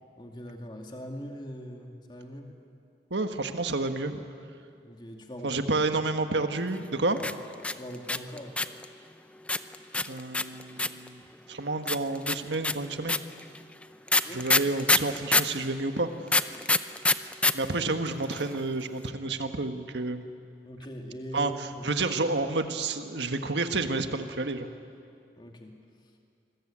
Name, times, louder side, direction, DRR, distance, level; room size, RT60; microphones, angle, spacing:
voice 1, 0.2-2.5 4.8-5.6 7.7-8.6 14.2-14.5 20.6-21.8 25.4-25.8, equal, 25° left, 2 dB, 2.3 m, -41 dB
voice 2, 3.1-4.2 5.4-7.3 10.1-11.2 11.5-13.2 14.3-16.1 17.5-20.2 21.3-24.7, right 3 dB, 90° right, 7 dB, 1.6 m, -30 dB
sound 1, 7.2-8.8 9.5-11.1 11.9-15.6 16.3-17.5 17.8-17.9 18.1-18.6, left 2 dB, 5° left, 0.5 m, -24 dB
27.5 x 21.0 x 8.9 m, 2.4 s
head